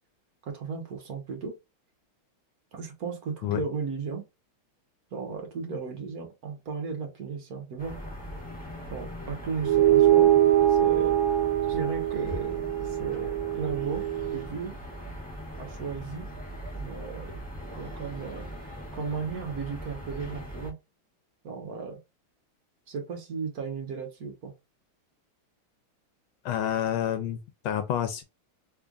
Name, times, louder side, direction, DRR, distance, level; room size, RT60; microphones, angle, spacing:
voice 1, 0.4-1.5 2.7-4.2 5.1-8.0 8.9-10.3 10.7-11.2 11.7-14.7 15.6-16.3 16.7-17.4 17.7-18.5 18.9-20.8 21.4-22.0 22.9-24.5, right 5 dB, 50° right, 1.4 m, -35 dB
sound 1, 7.8-20.7, equal, 5° left, 1.5 m, -40 dB
sound 2, 9.6-14.4, right 12 dB, 80° right, 1.5 m, -23 dB
voice 2, 26.4-27.4 27.6-28.2, left 10 dB, 80° left, 1.4 m, -28 dB
3.6 x 3.3 x 2.3 m
omnidirectional pair, 2.2 m